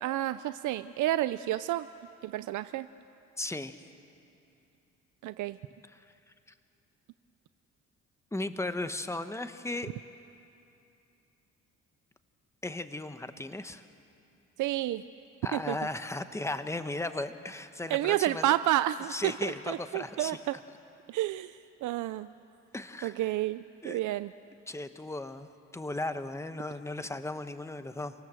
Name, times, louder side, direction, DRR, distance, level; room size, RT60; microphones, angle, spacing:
voice 1, 0.0-1.9 2.2-2.9 5.2-5.6 14.6-15.0 15.5-15.8 17.9-20.6 21.1-22.3 23.0-24.3, right 14 dB, 80° right, 13 dB, 0.5 m, -30 dB
voice 2, 3.4-3.9 5.9-6.0 8.3-9.9 12.6-13.8 15.4-18.4 19.1-20.4 22.7-23.3 23.8-24.0 24.7-28.1, left 2 dB, 10° left, 10 dB, 1.1 m, -36 dB
28.5 x 18.0 x 7.7 m, 2.7 s
cardioid pair, 90°, 30 cm